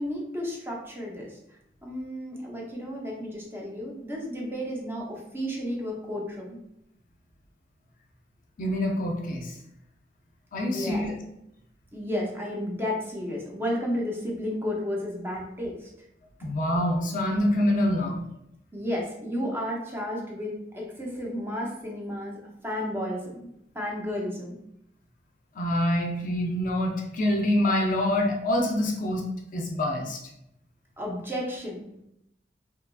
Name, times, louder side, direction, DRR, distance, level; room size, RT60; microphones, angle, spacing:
voice 1, 0.0-1.4 1.8-6.6 10.6-11.1 11.9-15.9 18.7-23.4 23.7-24.6 31.0-31.9, equal, 15° right, -2 dB, 0.6 m, -32 dB
voice 2, 8.6-9.6 10.5-11.1 16.4-18.2 25.5-29.2 29.5-30.2, left 1 dB, 50° left, 1 dB, 0.4 m, -26 dB
2.9 x 2.4 x 2.3 m, 0.79 s
head